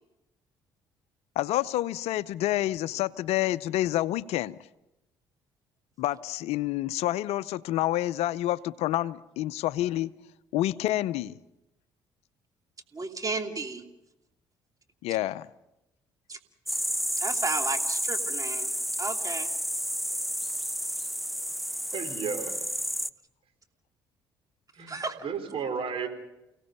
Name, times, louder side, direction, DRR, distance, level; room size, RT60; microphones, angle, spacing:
voice 1, 1.4-4.6 6.0-10.1 10.5-11.3 15.0-15.5, left 14 dB, 70° left, 0.6 m, -28 dB
voice 2, 12.9-13.8 16.3-16.4 17.2-18.7 19.0-19.5 24.9-25.2, right 3 dB, 30° right, 2.9 m, -33 dB
sound 1, 16.7-23.1, equal, ahead, 0.8 m, -31 dB
voice 3, 21.9-22.5 24.7-26.1, right 6 dB, 55° right, 4.4 m, -33 dB
30.0 x 17.5 x 5.5 m
hypercardioid pair, 55°, 11 cm